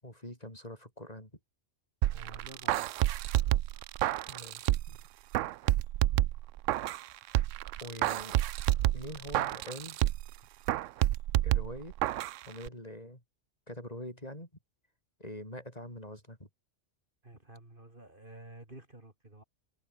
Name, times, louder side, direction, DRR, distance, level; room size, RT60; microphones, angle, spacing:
voice 1, 0.0-1.3 4.3-5.0 7.8-8.4 8.9-10.0 11.4-12.0 12.5-13.2 13.7-14.5 15.2-16.5, left 1 dB, 30° left, 8.2 m, -44 dB
sound 1, 2.0-5.0 5.3-7.0 7.3-10.3 10.7-12.4 12.7-12.8, right 14 dB, 90° right, 0.9 m, -29 dB
voice 2, 2.1-3.0 17.2-19.4, right 2 dB, 45° right, 4.2 m, -51 dB
omnidirectional pair, 1.2 m